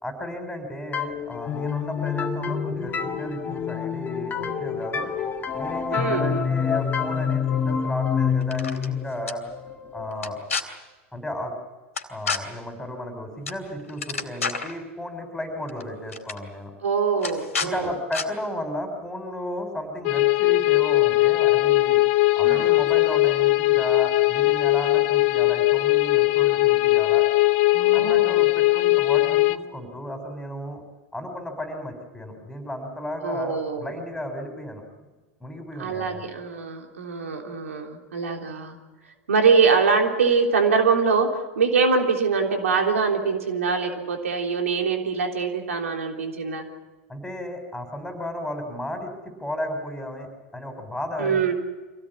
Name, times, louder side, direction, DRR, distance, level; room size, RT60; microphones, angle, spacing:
voice 1, 0.0-5.1 5.5-9.4 9.9-10.4 11.1-11.5 12.1-16.7 17.6-22.0 22.4-27.3 27.9-30.8 31.1-34.8 35.4-36.2 47.1-51.5, left 1 dB, 5° left, 6 dB, 5.9 m, -34 dB
sound 1, 0.9-10.5, left 7 dB, 25° left, 2.2 m, -27 dB
voice 2, 5.9-6.5 16.8-17.9 22.4-22.8 27.7-28.4 33.2-34.0 35.8-38.8 39.3-46.6 51.2-51.5, right 5 dB, 85° right, 3 dB, 3.4 m, -23 dB
sound 2, 8.4-8.9 9.3-9.4 10.2-10.6 12.0-12.4 13.5-13.6 13.9-14.7 15.7-15.8 16.1-16.4 17.2-17.7 18.1-18.3, left 5 dB, 90° left, 2.6 m, -29 dB
sound 3, 20.0-29.6, left 20 dB, 55° left, 1.2 m, -20 dB
25.5 x 17.5 x 8.6 m, 1.2 s
hypercardioid pair, 95°, 7 cm